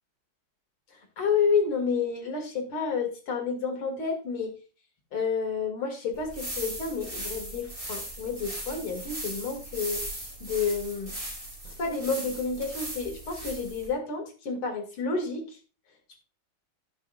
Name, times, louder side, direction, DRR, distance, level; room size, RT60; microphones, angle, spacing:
voice 1, 1.2-4.6 5.1-10.0 10.4-11.1 11.6-15.6, left 5 dB, 85° left, 3 dB, 3.2 m, -30 dB
sound 1, 6.1-13.9, right 1 dB, 15° right, 5.2 m, -38 dB
16.5 x 6.2 x 2.5 m, 0.36 s
omnidirectional pair, 2.3 m